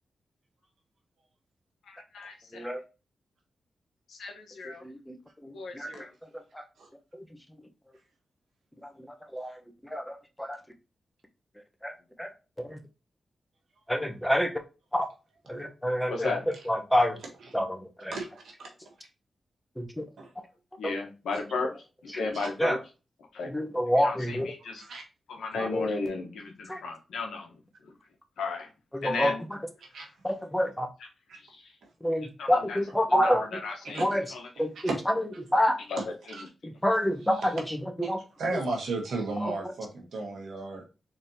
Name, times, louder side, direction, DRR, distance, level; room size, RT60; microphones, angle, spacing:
voice 1, 1.9-2.7 4.1-4.8 5.5-6.1 16.1-16.4 20.8-21.7 22.0-22.8 23.3-23.5 24.0-24.8 25.3-27.5 28.4-28.7 29.0-29.4 31.5-31.6 32.4-32.8 33.1-34.0 34.3-34.5 35.9-36.0 36.3-36.4, left 3 dB, 90° left, 2 dB, 1.0 m, -34 dB
voice 2, 4.8-5.2 5.4-5.9 9.3-9.5 9.9-10.6 11.8-11.9 12.2-12.3 12.7-12.8 13.9-14.5 14.9-15.1 15.5-16.4 16.7-17.2 17.5-18.1 19.8-20.0 22.6-22.8 23.5-24.5 25.6-25.9 26.7-26.8 28.9-29.3 30.2-30.9 32.0-33.4 34.0-34.2 34.6-35.7 36.8-37.8 38.1-38.2, equal, 10° left, 5 dB, 0.9 m, -27 dB
voice 3, 18.1-18.7 20.2-20.3 22.3-22.5 24.8-25.0 29.9-30.1 31.3-31.4 33.9-34.0 34.8-35.0 36.0-36.1 37.3-37.5 38.0-38.1 38.4-40.8, right 3 dB, 80° right, 1 dB, 1.4 m, -34 dB
3.9 x 3.4 x 2.7 m, 0.30 s
cardioid pair, 55°, 0 cm